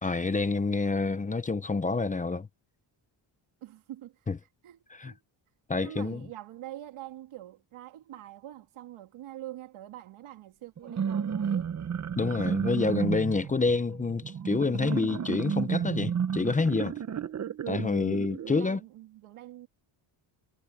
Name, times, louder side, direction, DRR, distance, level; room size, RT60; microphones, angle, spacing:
voice 1, 0.0-2.5 4.3-4.4 4.9-5.1 5.7-6.2 12.2-16.9 17.7-18.8, left 4 dB, 15° left, 0.7 m, -28 dB
voice 2, 3.6-5.2 5.8-11.7 18.4-19.7, right 14 dB, 85° right, 2.0 m, -45 dB
sound 1, 10.8-18.6, right 7 dB, 35° right, 0.8 m, -32 dB
cardioid pair, 150°, 48 cm